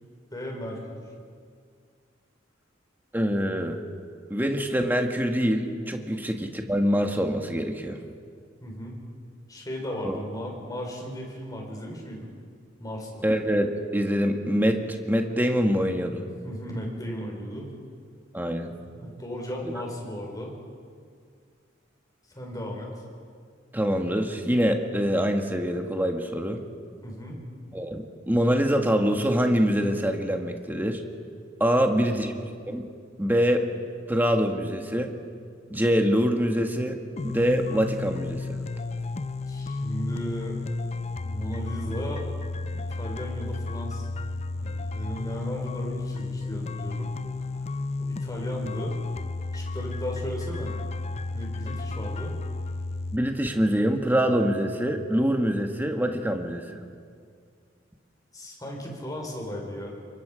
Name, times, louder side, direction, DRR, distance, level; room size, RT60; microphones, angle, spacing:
voice 1, 0.3-1.0 6.1-6.2 8.6-9.0 9.5-12.3 12.8-13.2 16.4-17.7 18.9-20.6 22.3-22.9 27.0-27.4 31.9-32.3 39.5-40.6 41.2-42.3 42.7-44.1 44.5-47.1 48.0-48.9 49.5-50.7 51.3-52.3 58.3-59.9, equal, 20° left, 0 dB, 4.6 m, -35 dB
voice 2, 3.1-3.8 4.3-8.0 10.0-10.2 13.2-16.2 18.3-18.7 19.6-19.7 23.7-26.6 27.7-31.0 31.6-32.3 32.7-32.9 33.2-33.7 34.1-35.1 35.7-37.0 37.2-38.6 53.1-56.8, equal, 10° right, 3 dB, 1.6 m, -24 dB
sound 1, 37.2-53.2, left 3 dB, 35° left, 0.5 m, -33 dB
28.0 x 24.0 x 5.0 m, 2.2 s
head